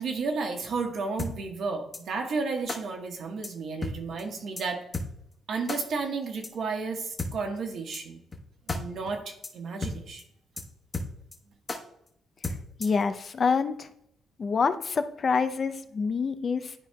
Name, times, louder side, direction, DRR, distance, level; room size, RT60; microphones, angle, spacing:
voice 1, 0.0-4.8 5.5-8.2 8.7-10.2, right 4 dB, 65° right, 3 dB, 1.3 m, -32 dB
sound 1, 1.2-1.3 1.9-2.0 2.7-2.8 3.4-3.5 3.8-3.9 4.2-4.3 4.6-4.7 4.9-5.1 5.7-5.8 6.4-6.5 7.2-7.3 7.9-8.0 8.3-8.4 8.7-8.8 9.1-9.2 9.4-9.5 9.8-9.9 10.2-10.3 10.6-10.7 10.9-11.4 11.7-11.8 12.4-13.0, left 2 dB, 25° left, 1.1 m, -32 dB
voice 2, 12.8-13.9 14.4-16.7, left 5 dB, 45° left, 10 dB, 0.5 m, -26 dB
11.5 x 4.4 x 2.3 m, 0.74 s
cardioid pair, 90°, 0 cm